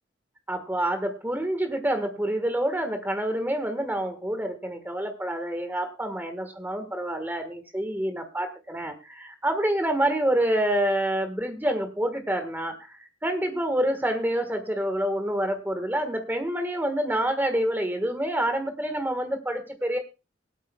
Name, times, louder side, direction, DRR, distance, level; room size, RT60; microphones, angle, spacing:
voice 1, 0.5-20.0, right 1 dB, 10° right, 7 dB, 1.4 m, -27 dB
23.5 x 8.4 x 2.3 m, 0.28 s
head